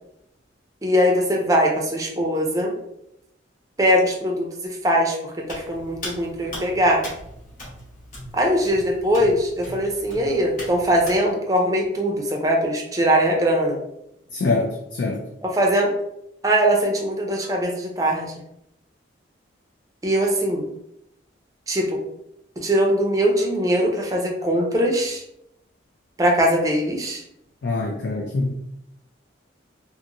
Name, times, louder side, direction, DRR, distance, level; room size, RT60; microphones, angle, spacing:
voice 1, 0.8-2.7 3.8-7.0 8.3-13.8 15.4-15.9 16.4-18.3 20.0-20.7 21.7-22.0 22.6-25.2 26.2-27.2, equal, 20° right, 0 dB, 0.5 m, -21 dB
Hands, 5.4-11.2, left 1 dB, 40° left, 1.1 m, -39 dB
voice 2, 14.3-15.2 27.6-28.5, left 3 dB, 70° left, 0 dB, 0.4 m, -24 dB
2.9 x 2.5 x 2.6 m, 0.79 s
head